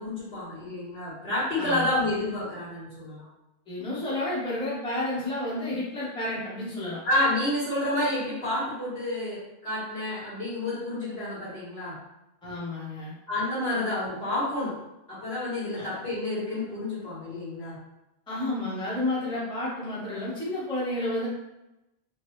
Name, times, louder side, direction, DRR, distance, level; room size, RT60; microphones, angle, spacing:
voice 1, 0.0-3.2 7.0-12.0 13.3-14.8 15.1-17.8, left 1 dB, 70° left, -9 dB, 1.7 m, -29 dB
voice 2, 1.6-1.9 3.7-7.0 12.4-13.1 13.7-13.8 15.7-15.9 18.3-21.3, left 1 dB, 5° left, -7 dB, 0.6 m, -31 dB
3.1 x 2.2 x 3.0 m, 0.93 s
omnidirectional pair, 1.1 m